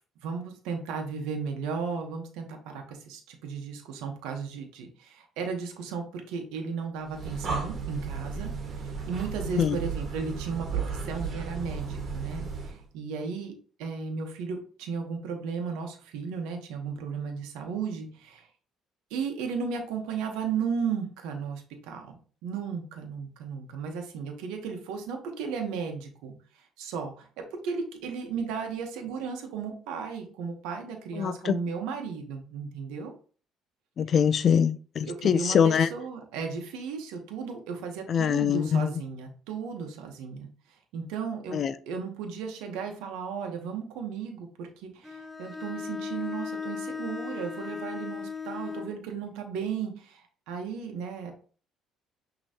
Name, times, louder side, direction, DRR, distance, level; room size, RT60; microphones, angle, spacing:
voice 1, 0.2-8.5 8.8-18.5 19.1-22.2 22.4-33.1 35.1-51.3, right 5 dB, 85° right, 1.0 m, -35 dB
Breathing, 7.0-12.8, right 5 dB, 50° right, 1.6 m, -34 dB
voice 2, 31.2-31.6 34.0-35.9 38.1-38.9 41.5-41.7, left 8 dB, 50° left, 0.4 m, -23 dB
Bowed string instrument, 45.0-49.0, left 5 dB, 5° right, 0.7 m, -36 dB
6.1 x 3.0 x 2.8 m
supercardioid pair, 90°, 0 cm